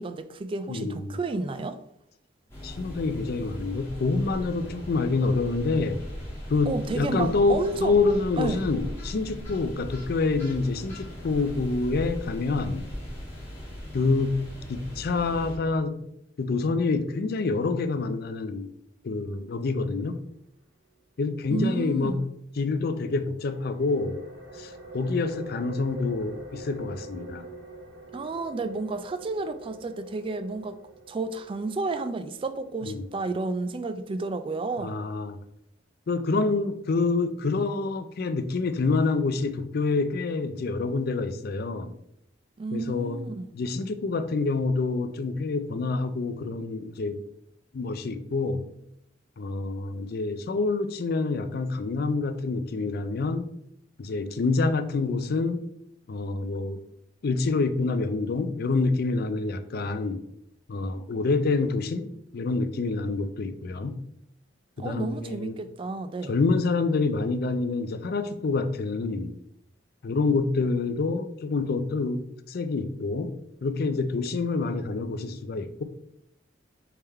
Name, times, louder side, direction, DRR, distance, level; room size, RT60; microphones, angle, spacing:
voice 1, 0.0-1.8 6.7-7.9 8.4-8.6 21.5-22.2 28.1-30.8 31.1-35.0 42.6-43.5 64.8-66.4, right 3 dB, 30° right, 0.3 m, -31 dB
voice 2, 0.7-1.2 2.6-6.0 6.5-12.9 13.9-16.0 16.4-18.7 19.0-20.2 21.2-22.2 22.6-24.2 24.5-27.5 32.8-33.0 34.8-35.4 36.1-41.9 42.7-43.2 43.5-47.2 47.7-48.7 49.4-53.5 54.0-55.6 56.1-56.8 57.2-60.2 60.7-64.0 64.8-65.6 66.3-69.3 70.0-73.3 73.6-75.8, left 3 dB, 55° left, 0.4 m, -27 dB
sound 1, 2.5-15.5, equal, 15° left, 1.4 m, -39 dB
sound 2, 23.3-34.7, right 1 dB, 65° right, 1.2 m, -45 dB
3.5 x 3.5 x 4.3 m
head